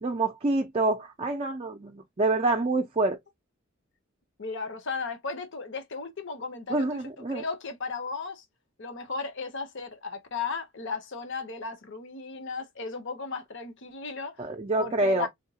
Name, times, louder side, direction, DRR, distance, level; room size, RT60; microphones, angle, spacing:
voice 1, 0.0-3.2 6.7-7.4 14.4-15.3, right 2 dB, 30° right, 0.5 m, -27 dB
voice 2, 4.4-8.4 8.8-14.5 14.8-15.3, left 4 dB, 60° left, 0.9 m, -35 dB
3.5 x 2.3 x 2.7 m
head